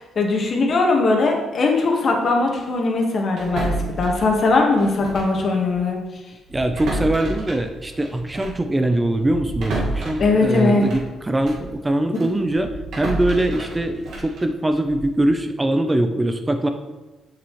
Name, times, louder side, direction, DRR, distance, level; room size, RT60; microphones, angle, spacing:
voice 1, 0.1-6.0 10.2-10.8, left 3 dB, 50° left, 1 dB, 1.6 m, -20 dB
sound 1, 3.4-5.4 5.7-5.9 6.5-11.7 12.1-15.2, right 1 dB, 75° right, 1.8 m, -31 dB
voice 2, 6.5-16.7, right 1 dB, 15° right, 7 dB, 0.6 m, -22 dB
7.9 x 6.7 x 3.2 m, 1.2 s
cardioid pair, 90°, 0 cm